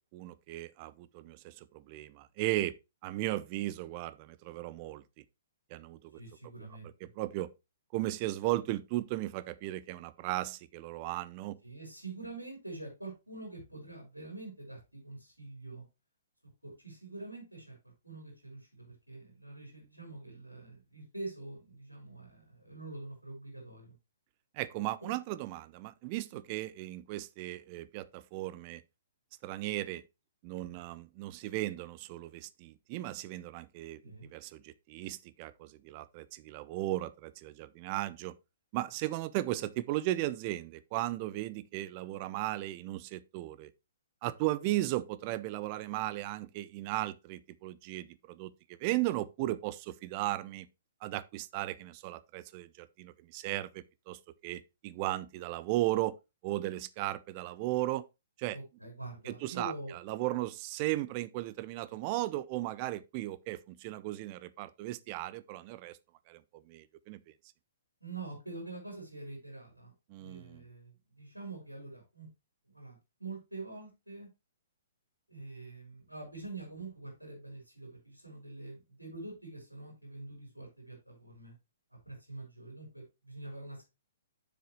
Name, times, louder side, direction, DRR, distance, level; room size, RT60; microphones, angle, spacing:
voice 1, 0.0-2.8 3.0-5.0 5.7-6.2 7.0-7.5 7.9-11.6 24.5-28.8 29.4-30.0 30.4-38.3 38.7-43.7 44.2-48.5 48.8-50.7 51.0-56.1 56.4-58.0 58.4-58.6 59.2-59.7 60.1-66.0 66.3-67.2 70.1-70.6, right 16 dB, 35° right, 0.6 m, -36 dB
voice 2, 6.1-7.1 11.6-15.8 16.6-23.9 34.0-34.3 58.5-60.0 68.0-72.3 72.7-74.3 75.3-81.6 82.1-83.9, right 3 dB, 90° right, 4.1 m, -45 dB
7.8 x 6.7 x 3.1 m
figure-of-eight pair, 120°, 0 cm